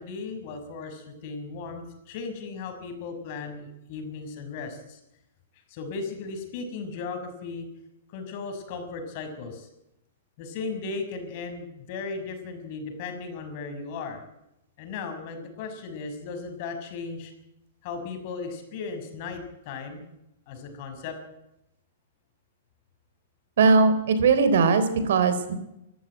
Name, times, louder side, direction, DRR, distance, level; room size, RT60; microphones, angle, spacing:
voice 1, 0.0-5.0 5.7-7.7 8.1-9.7 10.4-14.2 14.8-17.3 17.8-20.0 20.5-21.2, left 4 dB, 45° left, 7 dB, 6.0 m, -36 dB
voice 2, 23.6-25.5, right 4 dB, 75° right, 11 dB, 3.8 m, -20 dB
25.0 x 14.5 x 9.1 m, 0.89 s
hypercardioid pair, 140°, 0 cm